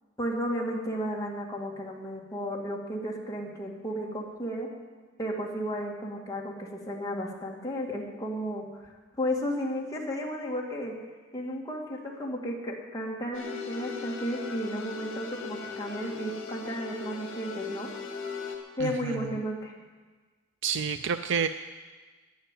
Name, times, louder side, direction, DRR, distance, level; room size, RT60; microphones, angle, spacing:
voice 1, 0.2-4.7 5.2-10.9 11.3-17.9 18.8-19.8, equal, 15° left, -2 dB, 2.2 m, -33 dB
sound 1, 13.3-18.6, left 5 dB, 65° left, 2.3 m, -39 dB
voice 2, 18.8-19.2 20.6-21.5, right 6 dB, 65° right, 10 dB, 0.4 m, -29 dB
11.5 x 10.5 x 9.1 m, 1.4 s
head